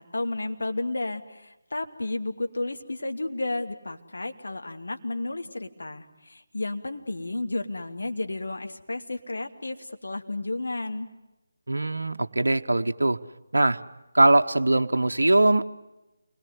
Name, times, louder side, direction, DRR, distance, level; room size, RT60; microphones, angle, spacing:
voice 1, 0.0-11.1, left 2 dB, 70° left, 5 dB, 2.5 m, -32 dB
voice 2, 11.7-13.2 13.5-13.8 14.1-15.7, right 2 dB, 75° right, 6 dB, 1.0 m, -21 dB
29.0 x 21.5 x 9.5 m, 1.0 s
figure-of-eight pair, 155°, 0 cm